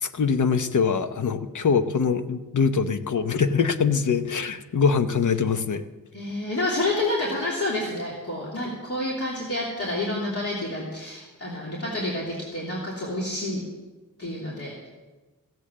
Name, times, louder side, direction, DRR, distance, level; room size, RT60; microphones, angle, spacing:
voice 1, 0.0-5.8, left 5 dB, 60° left, 9 dB, 0.9 m, -23 dB
voice 2, 6.1-13.6 14.2-14.9, left 1 dB, 40° left, -5 dB, 3.1 m, -29 dB
15.5 x 8.5 x 7.5 m, 1.2 s
wide cardioid pair, 115°, 35 cm